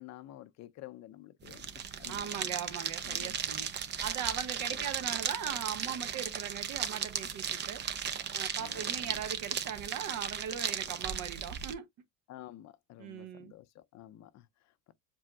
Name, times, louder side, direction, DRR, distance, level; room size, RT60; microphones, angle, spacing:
voice 1, 0.0-2.5 3.0-3.7 4.7-4.9 8.6-9.2 12.3-14.9, left 14 dB, 55° left, 0.7 m, -51 dB
sound 1, 1.4-11.7, right 7 dB, 30° right, 0.7 m, -36 dB
voice 2, 2.1-3.7 4.0-7.8 8.3-11.9 13.0-13.5, right 8 dB, 65° right, 1.4 m, -39 dB
7.5 x 2.8 x 2.3 m
cardioid pair, 130°, 33 cm